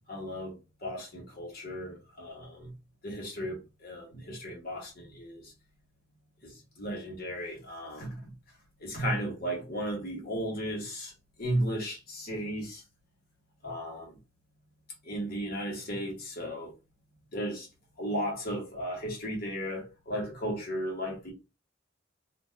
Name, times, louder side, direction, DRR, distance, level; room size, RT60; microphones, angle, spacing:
voice 1, 0.1-2.7 3.0-5.5 6.4-8.3 8.8-11.1 11.4-12.8 13.6-14.2 15.0-16.7 17.3-17.7 18.0-21.3, equal, 50° left, 1.1 m, -35 dB
2.5 x 2.2 x 3.3 m
head